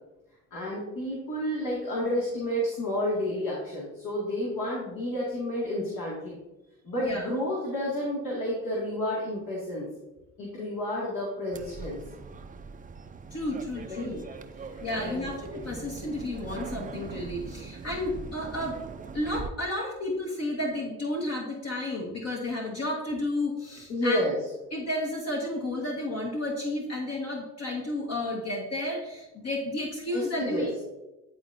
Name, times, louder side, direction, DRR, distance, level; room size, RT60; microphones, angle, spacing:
voice 1, 0.5-6.4 6.8-9.9 10.4-12.0 13.9-14.2 14.7-15.3 23.9-24.4 30.1-30.7, left 1 dB, 70° left, -6 dB, 2.2 m, -30 dB
voice 2, 7.0-7.3 13.3-14.2 14.8-18.8 19.1-24.2 24.7-30.8, left 1 dB, 50° left, -2 dB, 1.3 m, -32 dB
sound 1, 11.5-19.5, right 4 dB, 25° right, 0.5 m, -41 dB
10.5 x 4.1 x 2.6 m, 1.0 s
supercardioid pair, 70°, 33 cm